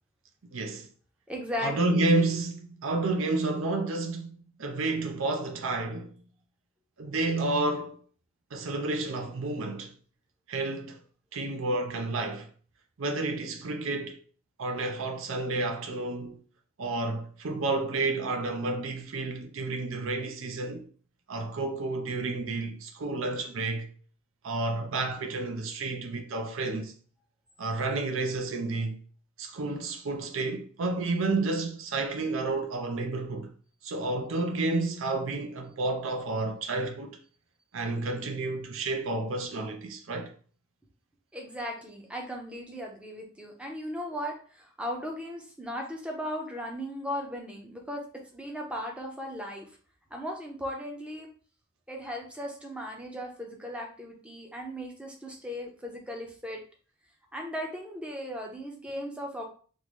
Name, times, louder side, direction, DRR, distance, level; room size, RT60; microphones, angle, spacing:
voice 1, 0.5-0.9 1.6-6.1 7.0-8.0 8.5-9.9 10.5-11.0 11.3-12.5 13.0-14.2 14.6-16.4 16.8-20.9 21.3-23.9 24.4-26.9 27.6-29.0 29.4-33.5 33.8-37.2 37.7-40.3, right 2 dB, 65° right, 0.5 m, -30 dB
voice 2, 1.3-2.1 41.3-48.0 48.3-49.7 50.1-51.3 51.9-56.6 57.3-59.4, equal, 5° right, 0.6 m, -37 dB
3.7 x 2.5 x 3.0 m
head